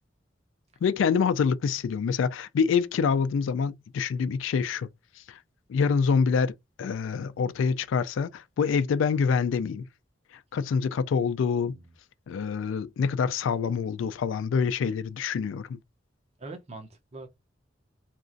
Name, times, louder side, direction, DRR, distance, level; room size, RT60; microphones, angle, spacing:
voice 1, 0.8-4.9 5.3-5.4 5.7-6.5 6.8-9.9 10.5-11.7 12.3-15.8, left 6 dB, 80° left, 0.3 m, -26 dB
voice 2, 11.6-11.9 14.9-15.0 16.4-17.3, right 3 dB, 35° right, 0.6 m, -43 dB
2.9 x 2.4 x 2.5 m
head